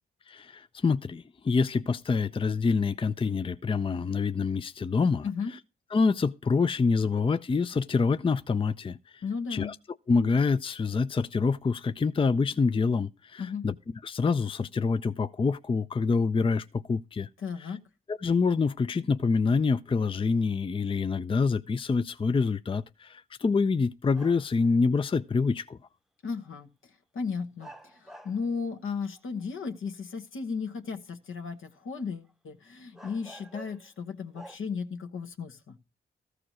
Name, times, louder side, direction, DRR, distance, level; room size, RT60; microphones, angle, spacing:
voice 1, 0.3-5.3 5.9-9.2 9.5-9.8 10.1-13.7 14.0-17.3 18.1-25.8, left 4 dB, 25° left, 0.4 m, -26 dB
voice 2, 9.2-9.7 13.4-13.7 17.4-17.8 26.2-26.7 27.1-35.8, left 5 dB, 75° left, 1.3 m, -35 dB
sound 1, 24.1-24.7 26.4-26.5 27.6-28.5 29.2-29.7 32.3-32.4 32.9-34.0 34.3-34.6, right 1 dB, ahead, 0.8 m, -49 dB
14.0 x 4.9 x 6.1 m
cardioid pair, 55°, 21 cm